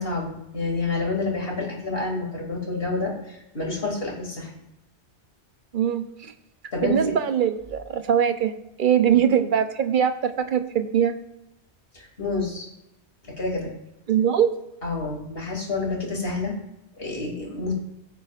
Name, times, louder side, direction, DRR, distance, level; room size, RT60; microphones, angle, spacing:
voice 1, 0.0-4.5 6.7-7.1 9.0-9.2 11.9-12.7 13.2-13.7 14.8-16.5 17.0-17.7, left 3 dB, 55° left, -2 dB, 2.8 m, -28 dB
voice 2, 5.7-6.0 6.8-8.5 8.8-11.1 14.1-14.5, right 8 dB, 50° right, 9 dB, 0.9 m, -21 dB
16.0 x 8.3 x 2.5 m, 0.85 s
omnidirectional pair, 1.2 m